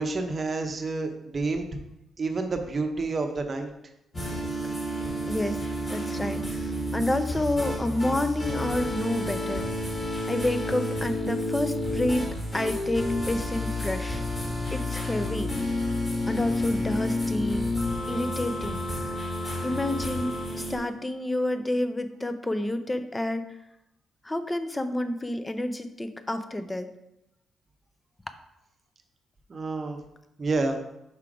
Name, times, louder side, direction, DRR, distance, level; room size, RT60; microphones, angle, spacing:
voice 1, 0.0-1.7 2.2-3.7 29.5-30.0 30.4-30.8, right 3 dB, 35° right, 5 dB, 0.7 m, -29 dB
sound 1, 4.1-20.8, left 1 dB, 30° left, 1.4 m, -30 dB
voice 2, 5.3-9.7 10.3-14.2 14.7-15.5 16.3-17.7 18.1-18.9 19.6-23.4 24.2-26.9, left 1 dB, 15° left, 9 dB, 0.5 m, -29 dB
5.6 x 3.8 x 4.8 m, 0.87 s
cardioid pair, 115°, 0 cm